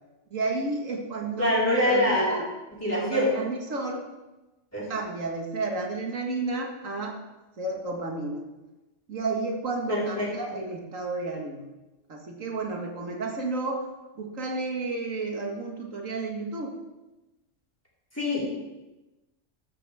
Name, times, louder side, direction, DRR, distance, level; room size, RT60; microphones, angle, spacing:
voice 1, 0.3-2.5 2.8-4.0 4.8-7.2 7.6-8.4 9.1-11.6 12.1-13.9 14.2-16.7, right 3 dB, 90° right, 1 dB, 2.1 m, -31 dB
voice 2, 1.4-2.2 2.8-3.3 4.7-4.9 9.9-10.6 18.1-18.4, left 1 dB, 10° left, -7 dB, 4.4 m, -25 dB
13.5 x 13.0 x 3.5 m, 1.1 s
omnidirectional pair, 1.3 m